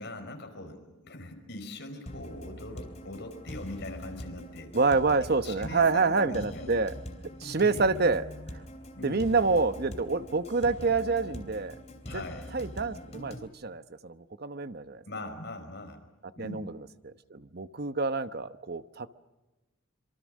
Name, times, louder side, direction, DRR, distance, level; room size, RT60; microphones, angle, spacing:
voice 1, 0.0-4.8 5.2-6.8 7.6-8.5 8.9-9.3 12.0-12.5 15.0-16.1 16.4-16.7, left 1 dB, 55° left, 5 dB, 5.0 m, -41 dB
sound 1, 2.1-13.5, equal, 30° left, 3.1 m, -43 dB
voice 2, 4.7-6.9 7.4-8.3 9.0-11.8 12.1-12.2 12.5-15.0 16.4-16.6 17.0-19.1, right 4 dB, 50° right, 12 dB, 0.9 m, -27 dB
26.0 x 24.5 x 6.4 m, 1.1 s
head